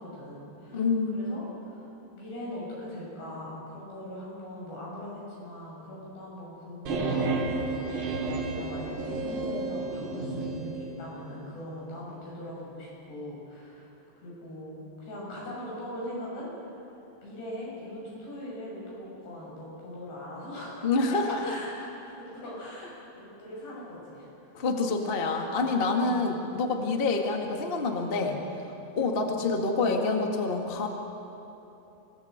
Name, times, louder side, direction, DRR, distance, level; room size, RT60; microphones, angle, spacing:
voice 1, 0.0-0.9 1.1-13.9 14.2-16.5 17.2-24.7 26.2-26.5, left 1 dB, 80° left, -4 dB, 9.1 m, -41 dB
voice 2, 0.7-1.2 20.8-21.4 24.5-28.4 29.0-30.9, left 3 dB, 60° left, 2 dB, 0.5 m, -27 dB
sound 1, 6.9-10.6, right 3 dB, 50° right, 4.0 m, -31 dB
27.0 x 18.0 x 8.1 m, 3.0 s
omnidirectional pair, 4.7 m